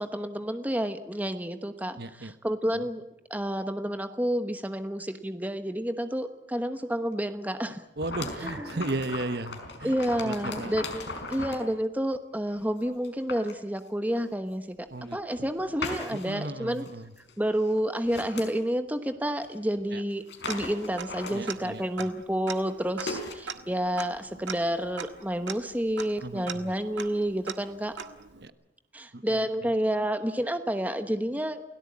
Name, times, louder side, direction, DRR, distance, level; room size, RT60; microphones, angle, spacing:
voice 1, 0.0-3.0 3.3-7.8 8.4-8.9 9.8-14.8 15.1-16.8 17.4-27.9 28.9-31.6, equal, 10° right, 9 dB, 1.1 m, -30 dB
voice 2, 2.0-2.3 8.0-10.7 11.4-11.5 14.9-15.5 16.1-17.1 19.9-20.0 21.3-22.1 26.2-26.7 28.4-28.5 29.1-29.7, right 2 dB, 55° right, 12 dB, 1.2 m, -36 dB
sound 1, 8.0-11.7 12.5-12.6 13.0-13.5 14.2-14.3 15.0-15.5 15.8-16.4 16.8-16.9 17.2-17.3 17.6-18.5 19.4-19.5 19.8-19.9 20.1-21.8 22.5-22.7 23.1-23.3, left 3 dB, 70° left, 4.6 m, -38 dB
Tick-tock, 20.5-21.2 21.5-21.6 21.9-28.5, right 6 dB, 75° right, 1.7 m, -41 dB
29.0 x 17.5 x 8.7 m, 0.88 s
head